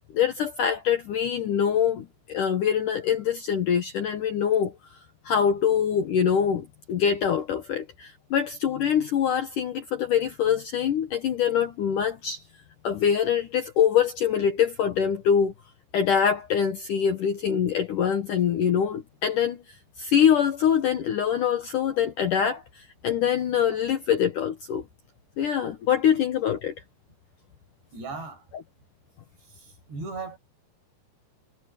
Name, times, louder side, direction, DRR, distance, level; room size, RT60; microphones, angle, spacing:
voice 1, 0.1-4.8 5.2-12.4 12.8-15.5 15.9-24.9 25.4-26.7, left 8 dB, 65° left, 2.1 m, -24 dB
voice 2, 27.9-28.5 29.5-30.4, right 3 dB, 70° right, 9.7 m, -37 dB
omnidirectional pair, 5.2 m